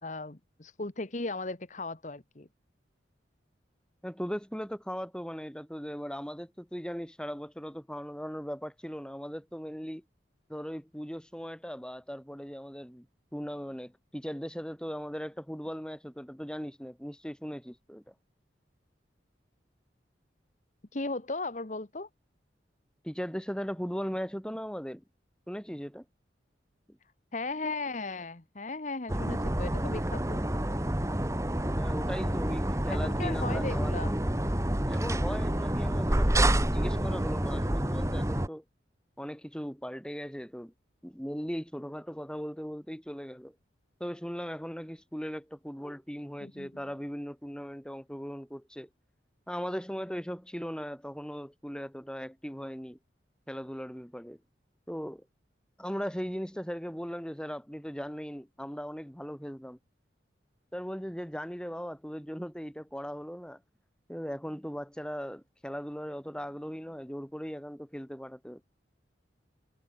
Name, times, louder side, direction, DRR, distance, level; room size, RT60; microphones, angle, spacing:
voice 1, 0.0-2.5 20.9-22.1 27.3-30.5 32.9-34.2 46.4-46.7, left 3 dB, 40° left, 1.2 m, -36 dB
voice 2, 4.0-10.0 10.5-13.1 13.3-18.1 23.0-25.0 25.5-26.1 26.9-27.0 31.7-34.3 34.8-38.6 39.2-40.7 41.0-43.6 44.0-48.9 49.5-53.0 53.5-54.4 54.9-55.3 55.8-59.8 60.7-63.6 64.1-68.6, equal, 5° left, 5.2 m, -38 dB
sound 1, 29.1-38.5, right 1 dB, 15° right, 1.5 m, -28 dB
head